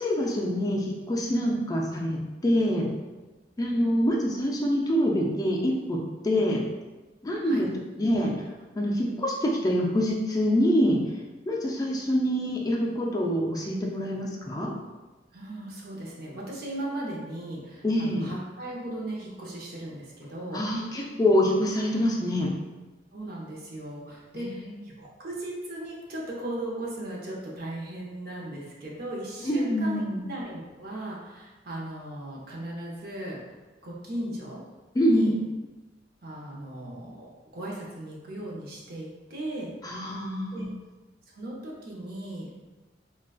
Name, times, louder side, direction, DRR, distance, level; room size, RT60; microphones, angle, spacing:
voice 1, 0.0-2.9 3.6-6.0 6.2-6.6 7.2-7.7 8.0-8.3 8.8-11.0 11.5-14.7 17.8-18.3 20.5-22.5 24.4-24.7 29.4-30.2 35.0-35.3 39.8-40.7, equal, 20° left, -2 dB, 0.4 m, -25 dB
voice 2, 15.3-20.6 23.1-33.6 33.8-34.6 35.1-35.4 36.2-39.7 40.5-40.7 41.3-42.6, right 1 dB, 60° right, -3 dB, 0.7 m, -37 dB
3.7 x 2.3 x 2.3 m, 1.2 s
head